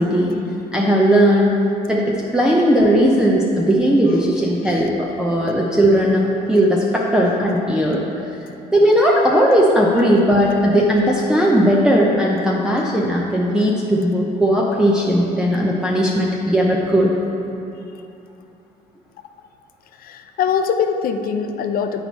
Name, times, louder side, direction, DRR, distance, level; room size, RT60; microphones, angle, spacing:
voice 1, 0.0-0.4 0.7-1.6 1.9-8.0 8.7-17.1, equal, 5° right, -5 dB, 0.6 m, -17 dB
voice 2, 20.0-22.0, left 6 dB, 60° left, 7 dB, 0.5 m, -24 dB
8.6 x 4.6 x 4.1 m, 2.8 s
cardioid pair, 110°, 17 cm